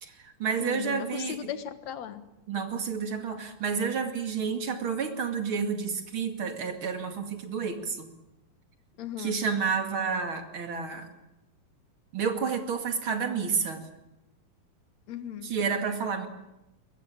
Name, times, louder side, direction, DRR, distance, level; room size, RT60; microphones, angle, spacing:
voice 1, 0.0-1.5 2.5-8.1 9.2-11.1 12.1-13.8 15.4-16.3, right 6 dB, 40° right, 6 dB, 2.6 m, -30 dB
voice 2, 0.6-2.2 9.0-9.4 15.1-15.5, left 9 dB, 60° left, 10 dB, 2.2 m, -37 dB
23.0 x 21.0 x 8.7 m, 0.93 s
omnidirectional pair, 4.2 m